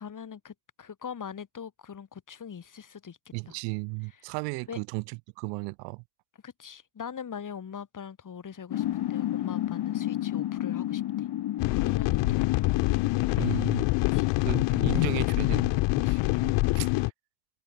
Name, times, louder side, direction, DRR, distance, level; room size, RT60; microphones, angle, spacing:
voice 1, 0.0-3.2 3.5-3.6 4.1-4.2 4.7-4.8 6.4-11.3 11.7-12.5 14.1-14.3, left 7 dB, 45° left, 6.3 m, -42 dB
voice 2, 3.3-6.0 12.2-12.3 13.4-13.9 14.5-16.9, right 36 dB, 85° right, 3.5 m, -35 dB
sound 1, 8.7-14.3, left 13 dB, 60° left, 2.1 m, -32 dB
sound 2, 11.6-17.1, left 24 dB, 80° left, 2.4 m, -25 dB
supercardioid pair, 65°, 43 cm